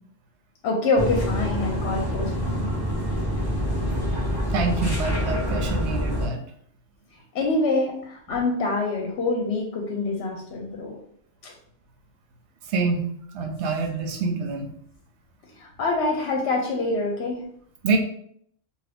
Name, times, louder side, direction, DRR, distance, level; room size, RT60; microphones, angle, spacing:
voice 1, 0.6-2.7 7.3-11.0 11.4-11.5 15.6-17.4, left 3 dB, 65° left, 1 dB, 0.8 m, -25 dB
sound 1, 1.0-6.3, equal, 20° right, 0.9 m, -26 dB
voice 2, 4.5-6.4 12.7-13.0 13.3-14.7 17.8-18.0, right 4 dB, 70° right, 3 dB, 0.9 m, -26 dB
2.7 x 2.6 x 3.3 m, 0.65 s
omnidirectional pair, 1.3 m